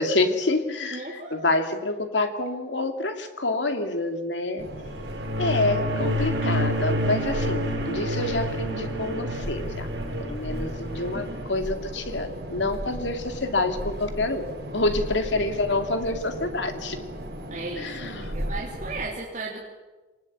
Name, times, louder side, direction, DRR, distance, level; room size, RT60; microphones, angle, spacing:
voice 1, 0.0-4.6 5.4-9.9 10.2-14.5 14.7-17.0 17.8-18.3, left 2 dB, 90° left, 6 dB, 2.5 m, -27 dB
voice 2, 0.9-1.4 11.1-11.2 17.5-19.6, right 3 dB, 40° right, -3 dB, 3.0 m, -35 dB
sound 1, 4.6-19.1, equal, 60° right, 6.1 m, -36 dB
sound 2, 4.8-11.5, equal, 85° right, 6.2 m, -29 dB
24.5 x 19.0 x 8.6 m, 1.2 s
head